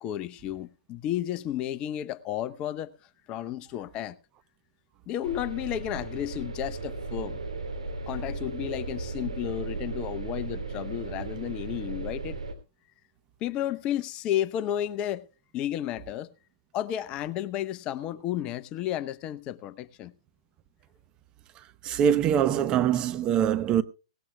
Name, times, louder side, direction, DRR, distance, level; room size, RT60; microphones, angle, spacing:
voice 1, 0.0-3.0 3.3-4.2 5.1-7.4 8.1-12.4 13.4-15.3 15.5-16.3 16.7-20.1, left 11 dB, 30° left, 0.7 m, -32 dB
sound 1, 5.2-12.5, right 3 dB, 85° right, 3.1 m, -36 dB
voice 2, 21.8-23.8, right 9 dB, 25° right, 0.8 m, -23 dB
18.5 x 18.0 x 2.2 m
figure-of-eight pair, 120°, 3 cm